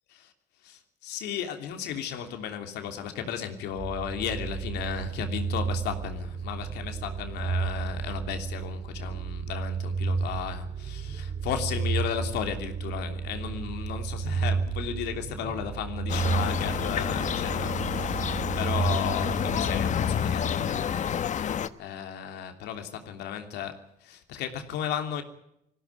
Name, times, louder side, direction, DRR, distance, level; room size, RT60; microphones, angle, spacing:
voice 1, 0.6-18.2 18.6-21.1 21.3-21.5 21.8-25.2, left 8 dB, 85° left, 6 dB, 3.1 m, -34 dB
sound 1, 3.7-20.6, right 5 dB, 30° right, 2.3 m, -32 dB
sound 2, 16.1-21.7, left 8 dB, 45° left, 1.1 m, -29 dB
20.0 x 16.0 x 9.4 m, 0.77 s
cardioid pair, 110°, 17 cm